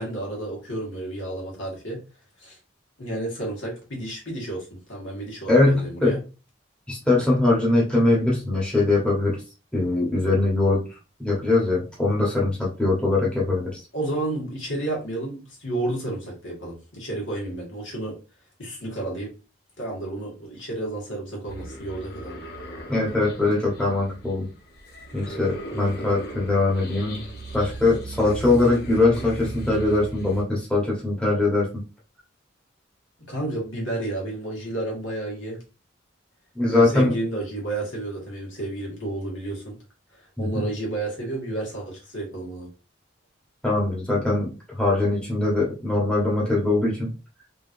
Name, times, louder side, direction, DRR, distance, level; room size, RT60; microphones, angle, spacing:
voice 1, 0.0-2.0 2.4-2.6 3.0-6.2 13.9-18.2 18.6-19.3 19.8-22.3 33.3-35.6 36.7-39.8 40.1-42.7, right 2 dB, 75° left, -2 dB, 1.7 m, -31 dB
voice 2, 5.5-6.2 6.9-9.4 9.7-10.9 11.2-13.8 22.9-24.5 25.1-27.2 27.5-31.8 36.5-37.1 40.4-40.6 43.6-44.5 44.8-47.1, left 2 dB, 5° left, -5 dB, 1.1 m, -22 dB
sound 1, 21.5-30.4, right 2 dB, 55° left, 0.9 m, -37 dB
3.6 x 3.0 x 2.6 m, 0.32 s
head